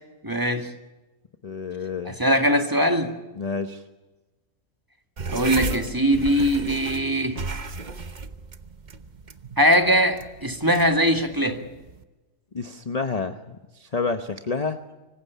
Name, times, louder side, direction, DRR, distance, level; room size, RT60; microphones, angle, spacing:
voice 1, 0.2-0.7 2.1-3.1 5.3-7.4 9.6-11.6, equal, 15° right, 5 dB, 1.9 m, -21 dB
voice 2, 1.4-2.2 3.4-3.8 12.5-14.9, left 4 dB, 30° left, 8 dB, 0.8 m, -29 dB
sound 1, 5.2-12.0, right 4 dB, 35° right, 1.0 m, -35 dB
25.0 x 15.5 x 9.3 m, 1.1 s
omnidirectional pair, 1.7 m